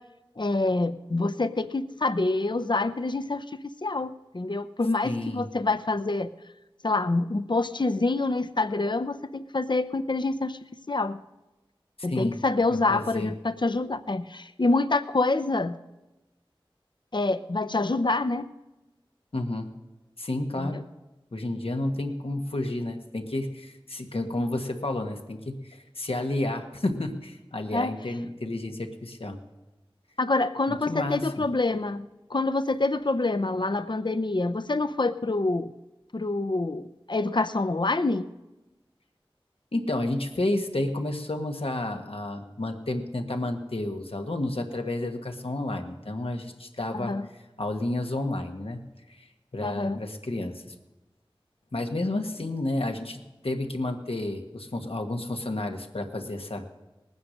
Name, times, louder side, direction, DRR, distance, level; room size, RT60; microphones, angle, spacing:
voice 1, 0.4-3.4 3.8-6.3 6.8-10.6 10.9-11.2 12.0-15.8 17.1-18.5 20.6-20.8 27.7-27.9 30.2-35.7 36.1-38.2 46.9-47.3 49.6-50.0, left 2 dB, 55° left, 11 dB, 0.7 m, -26 dB
voice 2, 5.0-5.5 12.1-12.4 12.9-13.3 19.3-19.7 20.2-20.8 21.3-29.4 30.9-31.4 39.7-47.1 47.6-48.8 49.1-49.3 49.5-50.7 51.7-56.7, left 2 dB, 85° left, 4 dB, 1.5 m, -31 dB
19.5 x 9.5 x 6.5 m, 1.0 s
wide cardioid pair, 45°, 9 cm